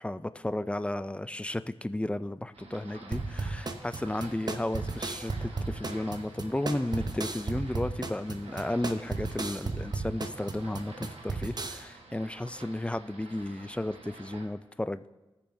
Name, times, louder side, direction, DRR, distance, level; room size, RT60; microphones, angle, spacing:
voice 1, 0.0-15.1, left 1 dB, 10° left, 13 dB, 0.4 m, -33 dB
sound 1, 2.5-14.5, right 3 dB, 75° right, 1.4 m, -50 dB
sound 2, 3.1-11.8, right 3 dB, 40° right, 0.9 m, -34 dB
18.0 x 7.0 x 2.7 m, 1.1 s
cardioid pair, 50°, 10 cm